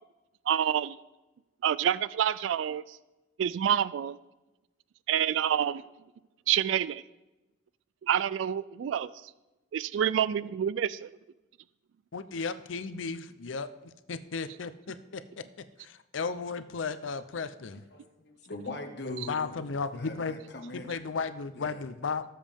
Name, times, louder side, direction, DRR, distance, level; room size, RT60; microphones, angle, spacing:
voice 1, 0.5-1.0 1.6-3.0 3.4-4.2 5.1-5.8 6.5-7.0 8.0-9.1 9.7-11.1, right 9 dB, 80° right, 17 dB, 0.3 m, -27 dB
voice 2, 12.1-15.2 15.8-17.9 19.1-20.4 20.7-22.2, left 4 dB, 90° left, 13 dB, 0.6 m, -35 dB
voice 3, 17.9-19.5 20.0-20.9 21.5-21.8, left 2 dB, 60° left, 4 dB, 1.6 m, -41 dB
18.0 x 7.4 x 3.5 m, 1.0 s
head